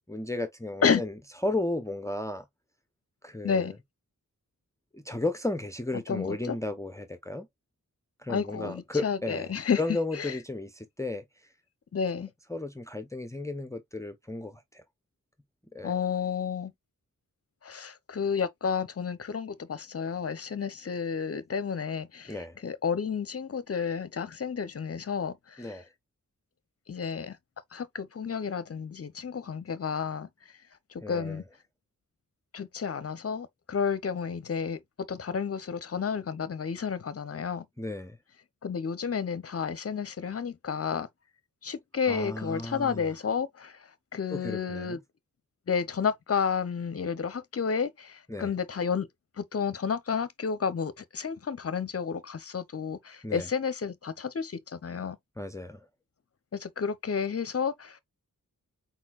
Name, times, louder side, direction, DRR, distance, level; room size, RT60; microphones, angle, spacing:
voice 1, 0.1-1.1 1.4-2.5 3.2-3.7 4.9-7.5 8.2-9.5 9.8-11.2 12.5-14.8 15.7-16.0 22.3-22.6 25.6-25.9 31.0-31.4 37.8-38.2 42.1-43.1 44.3-45.0 48.3-48.5 53.2-53.5 55.4-55.9, left 2 dB, 10° left, 0.7 m, -34 dB
voice 2, 3.4-3.8 5.9-6.6 8.3-9.8 10.1-10.4 11.9-12.3 15.8-16.7 17.6-22.4 22.6-25.8 26.9-27.4 27.7-30.3 30.9-31.4 32.5-34.8 35.1-37.7 38.6-41.1 41.6-45.0 45.7-49.1 49.4-55.2 56.5-58.0, left 6 dB, 45° left, 0.7 m, -31 dB
4.3 x 4.2 x 2.4 m
wide cardioid pair, 65°, 34 cm